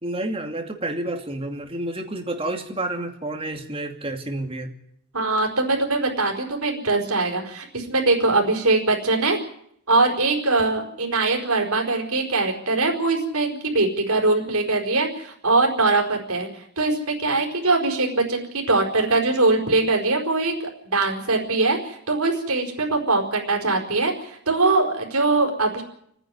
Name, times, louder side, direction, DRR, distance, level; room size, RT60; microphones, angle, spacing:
voice 1, 0.0-4.7, right 1 dB, 25° right, 4 dB, 2.5 m, -29 dB
voice 2, 5.1-9.4 9.9-20.5 20.8-25.8, right 3 dB, 75° right, 1 dB, 4.9 m, -22 dB
29.5 x 10.0 x 9.7 m, 0.71 s
head